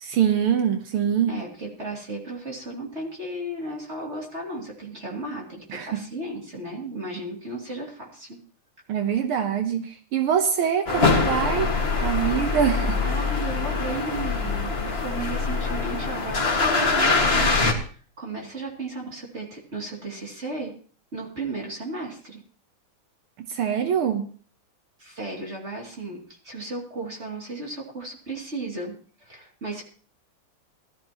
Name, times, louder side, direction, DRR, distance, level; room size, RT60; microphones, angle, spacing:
voice 1, 0.0-1.3 5.7-6.0 8.9-11.7 12.0-13.0 23.5-24.3, right 8 dB, 80° right, 7 dB, 1.8 m, -24 dB
voice 2, 1.3-8.3 13.0-20.7 21.1-22.4 25.0-29.8, right 2 dB, 30° right, -1 dB, 2.8 m, -35 dB
sound 1, 10.9-17.7, left 4 dB, 30° left, 1.8 m, -23 dB
18.0 x 13.0 x 2.9 m, 0.42 s
omnidirectional pair, 2.4 m